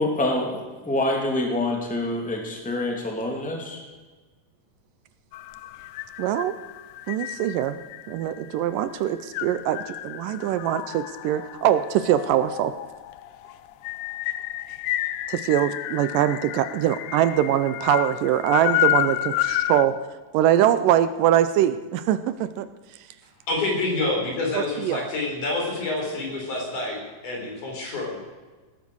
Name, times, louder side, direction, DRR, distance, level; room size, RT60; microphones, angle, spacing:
voice 1, 0.0-3.8, left 2 dB, 5° left, 1 dB, 2.2 m, -26 dB
sound 1, 5.3-19.9, left 15 dB, 80° left, 2.3 m, -30 dB
voice 2, 6.2-6.6 7.1-7.8 8.1-12.7 15.3-20.0 20.3-22.7 24.5-25.0, right 11 dB, 80° right, 13 dB, 2.2 m, -23 dB
voice 3, 23.5-28.2, left 2 dB, 60° left, -1 dB, 5.7 m, -28 dB
18.0 x 12.0 x 6.3 m, 1.3 s
omnidirectional pair, 4.0 m